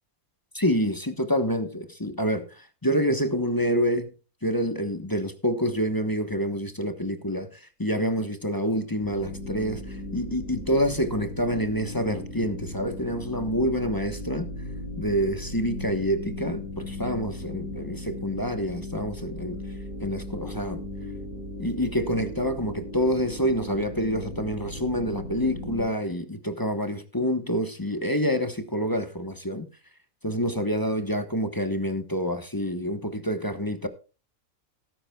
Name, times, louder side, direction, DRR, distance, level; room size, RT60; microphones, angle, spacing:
voice 1, 0.5-4.1 4.4-14.5 15.0-19.6 20.0-20.8 21.6-29.7 30.2-33.9, equal, 15° left, 1.0 m, -27 dB
sound 1, 9.0-25.9, left 1 dB, 70° right, 4.7 m, -37 dB
18.5 x 9.8 x 2.3 m
omnidirectional pair, 1.5 m